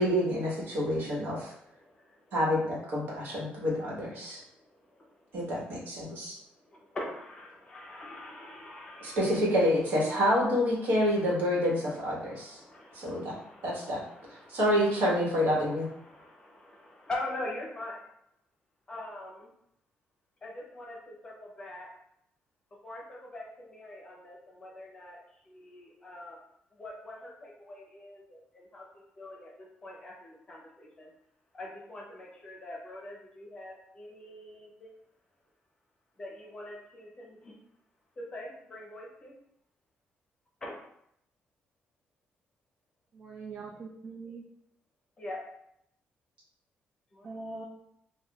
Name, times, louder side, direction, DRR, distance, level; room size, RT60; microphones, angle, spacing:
voice 1, 0.0-1.5 2.3-4.4 5.3-6.3 9.0-12.6 12.9-13.3 13.6-14.0 14.5-15.9, equal, 65° right, -4 dB, 1.3 m, -28 dB
voice 2, 1.2-2.3 4.2-5.4 6.0-9.4 10.7-18.0 18.9-19.5 20.4-21.9 22.8-25.2 25.4-26.4 26.7-31.1 31.5-34.9 36.2-37.5 38.2-39.4 40.6-40.8 45.2-45.4 47.1-47.4, left 1 dB, 25° left, -2 dB, 0.8 m, -44 dB
voice 3, 43.1-44.4 47.2-47.7, right 3 dB, 35° right, -1 dB, 0.4 m, -42 dB
5.7 x 2.3 x 2.3 m, 0.75 s
cardioid pair, 160°, 4 cm